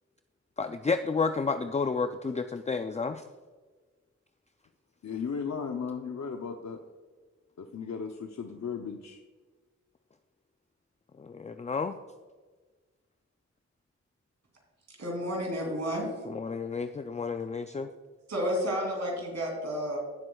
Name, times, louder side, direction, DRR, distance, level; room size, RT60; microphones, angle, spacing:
voice 1, 0.6-3.2 11.2-11.9 16.3-17.9, left 4 dB, 25° left, 8 dB, 0.4 m, -31 dB
voice 2, 5.0-6.8 7.6-9.2, left 6 dB, 70° left, 4 dB, 0.7 m, -36 dB
voice 3, 14.9-16.1 18.3-20.0, equal, 65° right, -1 dB, 2.9 m, -31 dB
16.5 x 7.6 x 2.3 m, 1.4 s
wide cardioid pair, 90°, 29 cm